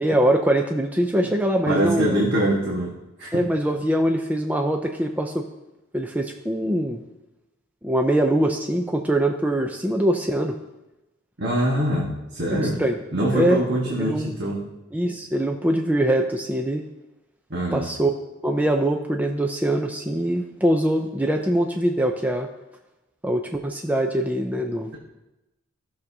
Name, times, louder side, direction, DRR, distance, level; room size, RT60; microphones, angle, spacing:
voice 1, 0.0-2.2 3.3-5.4 5.9-7.0 7.8-10.6 12.5-13.0 13.3-13.6 14.0-14.3 14.9-16.8 17.7-18.1 18.4-22.5 23.2-24.9, right 1 dB, 10° right, 3 dB, 0.5 m, -23 dB
voice 2, 1.7-3.4 11.4-12.8 13.1-14.6 17.5-17.9, right 1 dB, 55° right, -3 dB, 1.4 m, -24 dB
16.0 x 6.6 x 2.8 m, 0.99 s
head